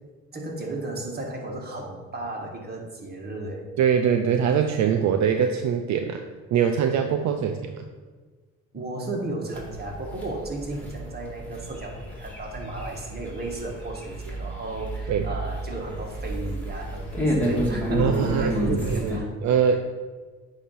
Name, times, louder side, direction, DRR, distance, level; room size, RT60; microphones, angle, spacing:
voice 1, 0.3-3.6 7.4-7.6 8.7-19.3, right 2 dB, 30° right, 0 dB, 1.5 m, -34 dB
voice 2, 3.8-6.2 6.5-7.8 15.1-15.3 17.9-19.2 19.4-19.8, right 7 dB, 65° right, 6 dB, 0.5 m, -23 dB
sound 1, 9.5-19.2, equal, 5° left, 1.8 m, -30 dB
8.3 x 2.8 x 5.6 m, 1.4 s
cardioid pair, 90°, 30 cm